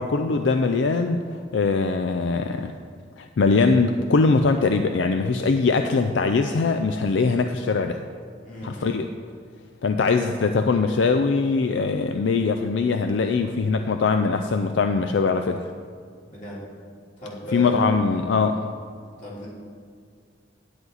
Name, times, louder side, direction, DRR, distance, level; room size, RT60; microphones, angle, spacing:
voice 1, 0.0-2.7 3.2-8.0 8.6-9.1 9.8-15.6 17.5-18.6, left 4 dB, 75° left, 7 dB, 0.4 m, -22 dB
voice 2, 8.4-8.9 16.2-16.6 17.2-17.9 19.2-19.5, right 1 dB, 45° left, -6 dB, 3.1 m, -35 dB
10.5 x 9.3 x 4.0 m, 2.1 s
head